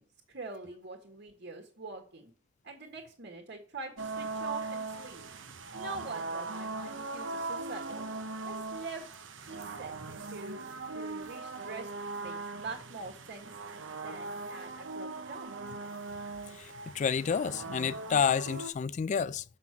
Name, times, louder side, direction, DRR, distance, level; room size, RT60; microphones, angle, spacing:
voice 1, 0.0-2.3 2.6-5.3 5.7-8.1 8.4-9.1 9.5-10.7 10.9-11.9 12.2-13.5 14.0-15.5, right 3 dB, 60° right, 1.6 m, -44 dB
sound 1, 4.0-18.7, right 3 dB, 80° right, 0.9 m, -40 dB
voice 2, 16.5-19.4, left 6 dB, 40° left, 0.3 m, -30 dB
7.5 x 5.7 x 5.9 m
head